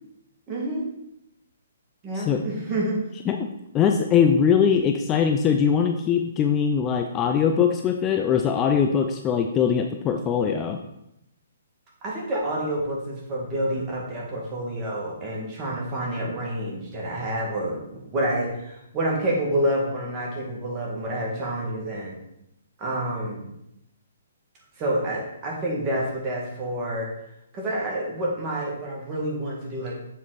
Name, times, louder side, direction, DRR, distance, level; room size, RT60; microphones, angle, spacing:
voice 1, 0.5-0.9 2.0-3.0 12.0-22.2 22.8-23.5 24.8-27.1 27.5-29.9, right 1 dB, 25° right, -3 dB, 2.1 m, -28 dB
voice 2, 3.7-10.8, left 7 dB, 20° left, 5 dB, 0.4 m, -21 dB
7.4 x 4.2 x 4.1 m, 0.82 s
hypercardioid pair, 145°, 0 cm